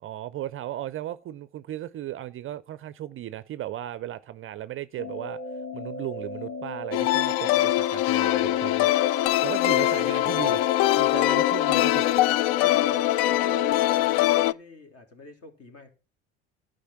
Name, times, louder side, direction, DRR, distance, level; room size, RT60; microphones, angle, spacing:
voice 1, 0.0-5.4 5.7-8.9 9.4-10.6 11.0-12.1, right 13 dB, 35° right, 0.5 m, -36 dB
sound 1, 5.0-14.0, left 2 dB, 20° left, 1.4 m, -36 dB
sound 2, 6.9-14.5, left 17 dB, 60° left, 0.4 m, -22 dB
voice 2, 8.1-8.7 9.8-10.6 12.5-15.9, left 2 dB, 40° left, 3.0 m, -45 dB
11.5 x 5.2 x 5.8 m
hypercardioid pair, 70°, 35 cm